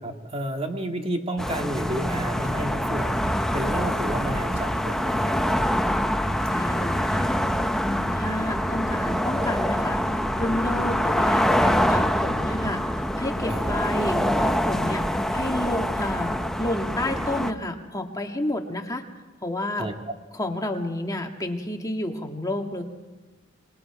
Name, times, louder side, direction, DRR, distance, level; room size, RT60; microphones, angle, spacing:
voice 1, 0.0-5.4 13.5-13.8 19.8-19.9, right 1 dB, 30° right, 3 dB, 2.1 m, -31 dB
sound 1, 1.4-17.5, equal, ahead, 0.8 m, -25 dB
sound 2, 2.1-2.6 3.0-3.3 3.8-4.7 5.2-5.6 6.4-7.2, right 1 dB, 80° right, 4.2 m, -40 dB
voice 2, 6.4-7.3 7.8-10.0 10.4-12.8 13.2-15.1 15.3-19.0 19.4-19.9 20.3-22.8, left 1 dB, 20° left, 3 dB, 1.8 m, -30 dB
26.5 x 21.0 x 4.9 m, 1.2 s
head